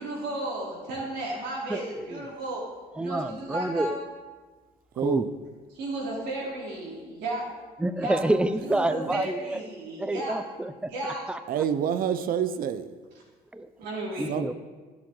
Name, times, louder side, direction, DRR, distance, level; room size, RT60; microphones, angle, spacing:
voice 1, 0.0-2.6 3.0-4.0 5.7-7.6 7.9-8.2 8.7-10.4 10.8-11.2 13.8-14.4, right 2 dB, 85° right, -4 dB, 3.6 m, -34 dB
voice 2, 1.7-2.2 3.0-3.9 5.0-5.2 7.8-9.6 10.0-10.9 11.3-11.4 13.5-13.7 14.2-14.5, right 1 dB, 5° right, 12 dB, 0.5 m, -28 dB
voice 3, 5.0-5.3 9.0-9.2 11.5-12.9 14.3-14.5, right 8 dB, 60° right, 11 dB, 0.6 m, -27 dB
12.5 x 7.8 x 3.9 m, 1.4 s
cardioid pair, 110°, 17 cm